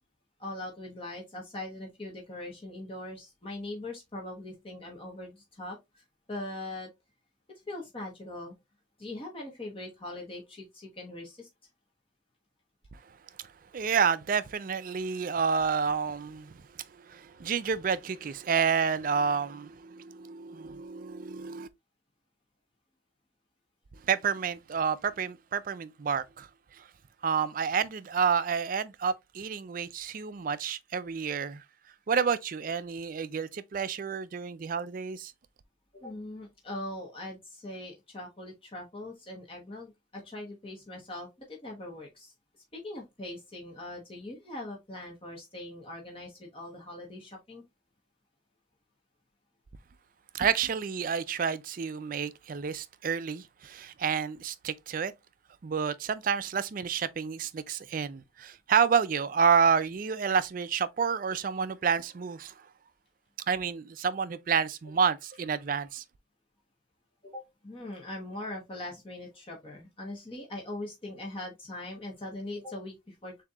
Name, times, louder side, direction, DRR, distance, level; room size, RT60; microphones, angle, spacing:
voice 1, 0.4-6.0 6.3-6.9 7.7-8.5 9.0-11.5 35.9-42.3 42.7-47.6 67.2-73.4, left 1 dB, 30° left, 1.1 m, -41 dB
voice 2, 13.7-16.5 17.1-21.7 24.1-26.5 27.2-31.6 32.1-35.3 50.3-55.1 55.6-62.5 63.5-66.0, right 6 dB, 45° right, 0.4 m, -29 dB
7.1 x 2.8 x 2.4 m
head